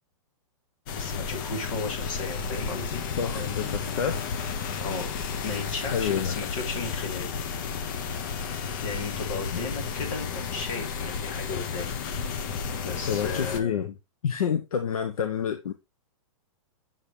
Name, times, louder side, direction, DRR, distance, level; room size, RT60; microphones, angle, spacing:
voice 1, 0.9-3.7 4.8-5.1 5.4-7.3 8.8-11.9 12.2-12.5 12.8-13.8, left 3 dB, 65° left, 3.4 m, -35 dB
sound 1, 0.9-13.6, left 6 dB, 35° left, 0.8 m, -32 dB
voice 2, 3.2-4.3 5.9-6.4 13.1-13.9 14.2-15.7, left 7 dB, 90° left, 0.8 m, -28 dB
7.2 x 5.1 x 3.1 m
hypercardioid pair, 160°, 18 cm